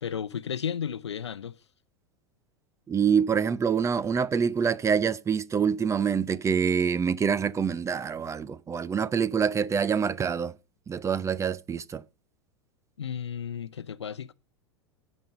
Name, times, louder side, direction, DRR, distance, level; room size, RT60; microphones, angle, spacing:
voice 1, 0.0-1.6 13.0-14.3, left 8 dB, 85° left, 0.7 m, -33 dB
voice 2, 2.9-10.5 10.9-12.0, right 6 dB, 20° right, 0.7 m, -26 dB
16.0 x 5.4 x 5.4 m
hypercardioid pair, 90°, 14 cm